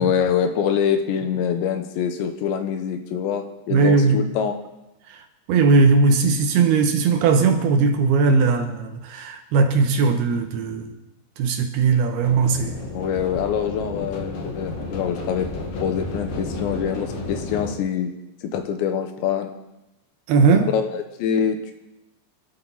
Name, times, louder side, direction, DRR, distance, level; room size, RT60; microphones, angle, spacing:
voice 1, 0.0-4.5 12.9-15.5 15.8-18.1 18.4-19.5 20.7-21.7, left 8 dB, 80° left, 3.4 m, -24 dB
voice 2, 3.7-4.3 5.1-5.2 5.5-10.9 11.4-12.8 20.3-20.7, right 4 dB, 70° right, 2.7 m, -18 dB
sound 1, 12.2-17.7, left 2 dB, 60° left, 2.7 m, -32 dB
25.0 x 12.5 x 4.1 m
omnidirectional pair, 5.1 m